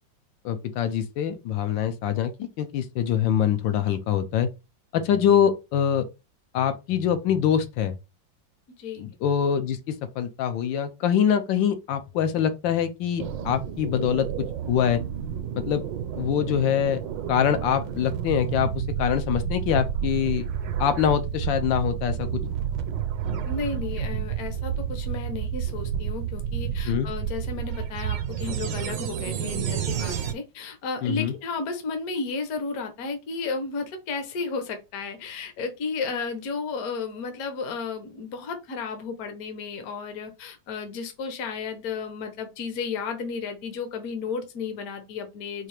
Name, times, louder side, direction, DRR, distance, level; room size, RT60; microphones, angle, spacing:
voice 1, 0.4-4.5 4.9-6.0 6.5-8.0 9.0-14.3 14.7-15.0 15.5-15.8 16.2-17.0 17.3-20.5 20.8-22.4 26.9-27.1 31.0-31.3, left 9 dB, 80° left, 1.4 m, -24 dB
sound 1, 13.2-30.3, right 9 dB, 80° right, 1.3 m, -30 dB
voice 2, 23.4-45.7, left 4 dB, 60° left, 1.2 m, -33 dB
4.5 x 2.4 x 3.2 m
omnidirectional pair, 2.1 m